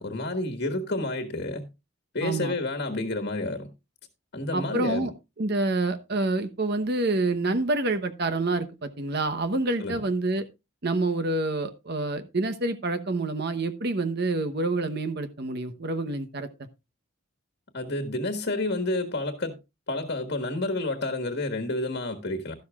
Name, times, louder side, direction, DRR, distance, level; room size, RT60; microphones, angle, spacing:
voice 1, 0.0-1.7 2.1-3.7 4.3-5.1 9.8-10.0 17.7-19.6 19.9-22.5, left 2 dB, 50° left, 1.5 m, -29 dB
voice 2, 2.2-2.5 4.5-5.1 5.4-10.5 10.8-16.5, right 2 dB, 50° right, 1.0 m, -27 dB
12.5 x 12.0 x 2.4 m
head